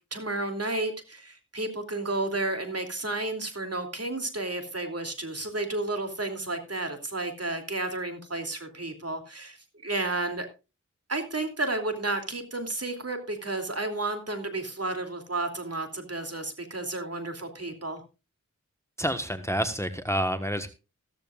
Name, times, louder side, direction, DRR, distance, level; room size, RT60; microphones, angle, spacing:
voice 1, 0.1-9.6 9.8-10.5 11.1-18.0, right 2 dB, 50° right, 5 dB, 2.9 m, -32 dB
voice 2, 19.0-20.7, equal, 10° left, 9 dB, 1.3 m, -28 dB
14.5 x 14.0 x 2.4 m, 0.30 s
wide cardioid pair, 45°, 32 cm